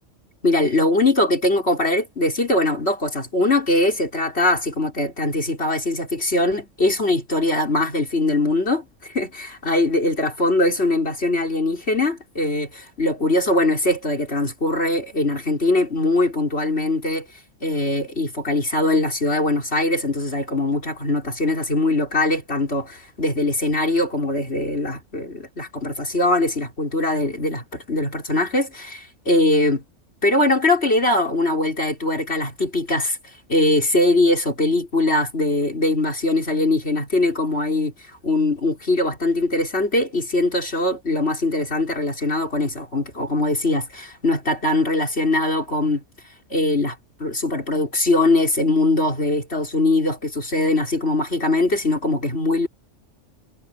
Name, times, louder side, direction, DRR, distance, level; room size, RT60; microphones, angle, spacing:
voice 1, 0.4-17.3 17.6-29.8 30.2-33.2 33.5-37.9 38.2-46.0 46.5-52.7, left 2 dB, 50° left, 5.7 m, -21 dB
omnidirectional pair, 1.4 m